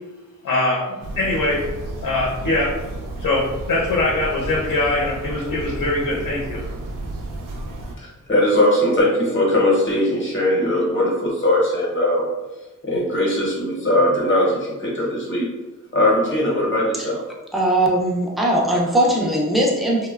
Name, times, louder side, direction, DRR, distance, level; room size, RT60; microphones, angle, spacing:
voice 1, 0.4-0.8 1.2-1.6 2.0-2.7 3.2-3.4 3.7-6.6, left 2 dB, 80° left, -4 dB, 0.6 m, -22 dB
sound 1, 1.0-8.0, right 1 dB, 90° right, 0.5 m, -32 dB
voice 2, 8.0-12.3 12.8-15.5 15.9-17.2, left 1 dB, 40° left, -4 dB, 0.7 m, -20 dB
voice 3, 17.5-20.1, right 1 dB, ahead, -3 dB, 0.3 m, -19 dB
2.8 x 2.0 x 2.3 m, 1.1 s
wide cardioid pair, 170°, 32 cm